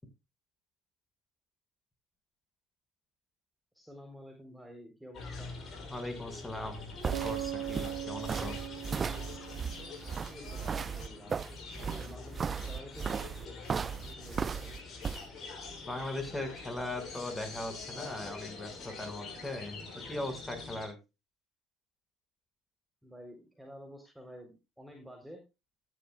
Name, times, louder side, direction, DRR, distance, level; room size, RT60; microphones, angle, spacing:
voice 1, 3.7-5.5 10.3-11.4 11.7-14.7 23.0-25.4, equal, 5° right, 3 dB, 3.8 m, -50 dB
sound 1, 5.1-20.9, left 4 dB, 50° left, 6.0 m, -45 dB
voice 2, 5.9-6.9 7.2-8.6 15.9-21.0, left 2 dB, 15° left, 7 dB, 5.6 m, -39 dB
sound 2, 6.6-15.2, right 6 dB, 35° right, 0.5 m, -36 dB
Bass guitar, 7.1-10.8, right 13 dB, 80° right, 1.6 m, -40 dB
14.5 x 11.5 x 2.3 m, 0.26 s
hypercardioid pair, 70°, 0 cm